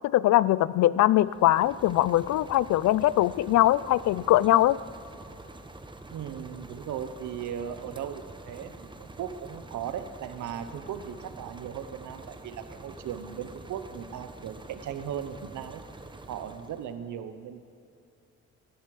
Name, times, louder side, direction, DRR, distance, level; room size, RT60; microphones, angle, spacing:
voice 1, 0.0-4.8, left 14 dB, 70° left, 20 dB, 0.5 m, -22 dB
Stationary Petrol-Gas-Engines, 1.2-17.0, right 2 dB, 15° right, 1.0 m, -46 dB
voice 2, 6.1-15.8 16.3-17.6, right 9 dB, 75° right, 10 dB, 1.1 m, -37 dB
16.5 x 11.5 x 4.9 m, 2.6 s
cardioid pair, 90°, 30 cm